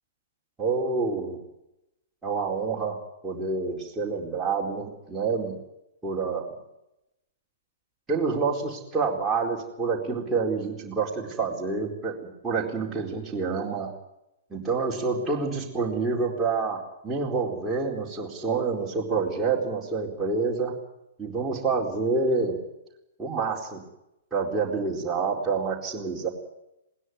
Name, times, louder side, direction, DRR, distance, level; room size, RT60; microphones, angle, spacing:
voice 1, 0.6-1.4 2.2-3.0 3.2-5.5 6.0-6.5 8.1-13.9 14.5-20.7 21.2-22.6 23.2-23.8 24.3-26.3, right 4 dB, 10° right, -4 dB, 4.4 m, -27 dB
21.0 x 18.5 x 9.7 m, 0.88 s
figure-of-eight pair, 115°, 0 cm